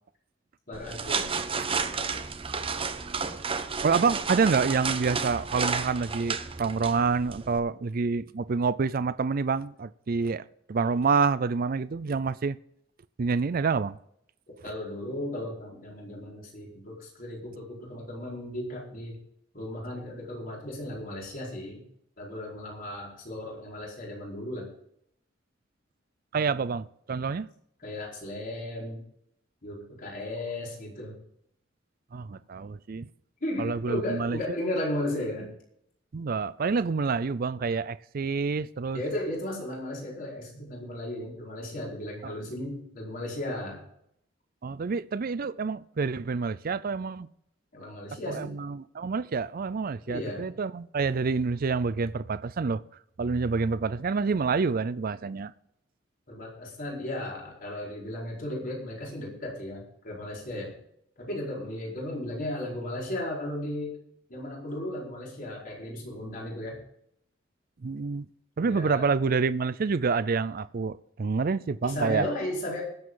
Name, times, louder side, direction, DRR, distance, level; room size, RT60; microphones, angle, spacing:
voice 1, 0.7-1.4 1.6-2.0 4.0-4.1 14.6-19.2 19.5-21.8 22.2-24.7 27.8-29.0 29.6-31.1 33.4-35.5 38.9-43.8 47.7-48.5 50.1-50.4 56.3-60.8 61.2-64.0 64.3-66.8 68.6-69.1 71.8-72.8, left 1 dB, 45° left, 4.8 m, -35 dB
sound 1, 0.7-7.6, right 5 dB, 30° right, 1.0 m, -32 dB
voice 2, 3.8-10.4 10.7-12.6 13.2-14.0 26.3-27.5 32.1-33.1 33.6-34.4 36.1-39.0 42.2-42.3 44.6-47.3 48.3-52.8 53.2-55.5 67.8-68.3 68.6-72.3, right 4 dB, 50° right, 0.4 m, -27 dB
21.0 x 7.8 x 3.9 m
head